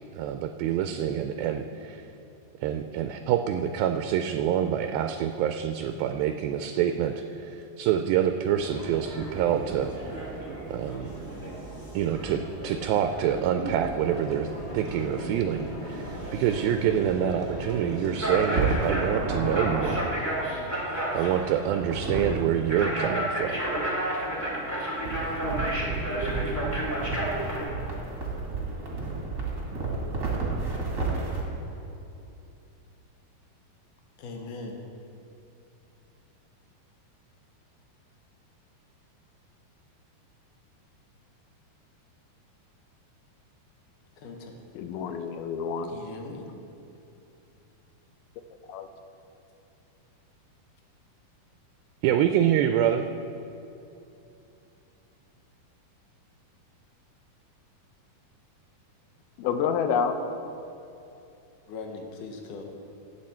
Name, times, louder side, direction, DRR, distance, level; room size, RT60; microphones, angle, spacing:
voice 1, 0.1-2.0 2.6-9.9 10.7-11.1 11.9-14.5 14.7-20.0 21.1-23.6 52.0-53.0, right 9 dB, 85° right, 7 dB, 2.3 m, -26 dB
sound 1, 8.5-27.6, right 1 dB, 5° left, 1.5 m, -33 dB
sound 2, 14.0-19.1, equal, 35° left, 1.0 m, -40 dB
sound 3, 18.5-20.0 21.7-22.4 25.0-31.4, right 3 dB, 30° right, 1.6 m, -31 dB
voice 2, 34.2-34.8 44.2-44.5 45.8-46.5 61.7-62.6, left 3 dB, 65° left, 2 dB, 2.4 m, -39 dB
voice 3, 44.8-45.9 48.7-48.9 59.4-60.1, left 7 dB, 80° left, 7 dB, 2.6 m, -28 dB
16.5 x 7.8 x 4.4 m, 2.8 s
omnidirectional pair, 4.3 m